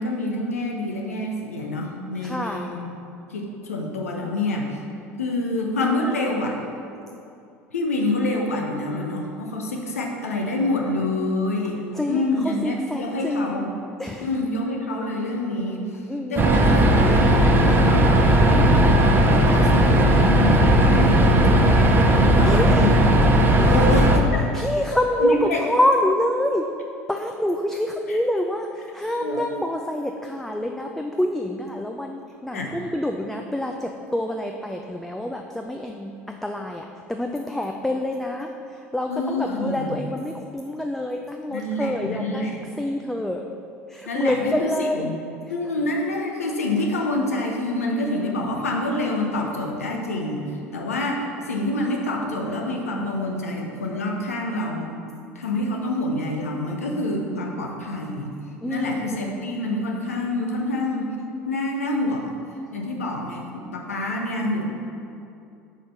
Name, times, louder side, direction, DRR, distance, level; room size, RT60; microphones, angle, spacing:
voice 1, 0.0-2.8 3.3-4.7 5.2-6.6 7.7-11.8 12.1-13.7 14.2-15.8 16.3-18.9 19.2-23.1 23.6-24.2 25.2-25.6 28.1-28.2 29.2-29.5 32.5-32.8 39.1-39.9 41.5-42.6 44.0-45.2 45.5-55.0 55.3-58.3 58.7-61.1 61.4-62.4 62.7-64.6, left 2 dB, 85° left, 1 dB, 0.7 m, -27 dB
voice 2, 2.2-2.8 11.9-13.7 14.0-14.3 16.1-16.4 22.4-22.9 23.6-24.0 24.5-26.7 27.1-28.7 28.9-38.5 38.9-42.5 42.8-43.4 43.9-45.2 58.6-59.2, left 1 dB, 5° left, 3 dB, 0.3 m, -26 dB
sound 1, 16.4-24.2, right 1 dB, 30° right, 0.7 m, -16 dB
4.9 x 4.4 x 5.4 m, 2.6 s
figure-of-eight pair, 70°, 8 cm